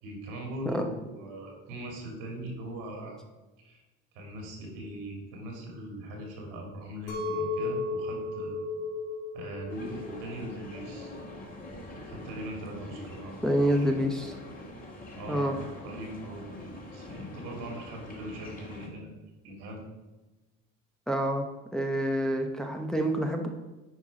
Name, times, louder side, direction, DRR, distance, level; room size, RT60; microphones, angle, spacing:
voice 1, 0.0-3.2 3.6-3.8 4.1-8.6 9.3-11.2 12.0-13.7 15.2-15.6 15.8-19.1 19.4-19.8, right 1 dB, 80° right, 1 dB, 2.9 m, -40 dB
Chink clink, 7.1-12.3, left 3 dB, 65° left, 2.7 m, -35 dB
sound 1, 9.7-18.9, left 1 dB, 25° left, 2.3 m, -44 dB
voice 2, 13.4-14.4 15.3-15.6 21.1-21.5 21.7-23.5, equal, ahead, 2 dB, 0.9 m, -27 dB
9.8 x 4.7 x 5.0 m, 1.1 s
cardioid pair, 105°, 32 cm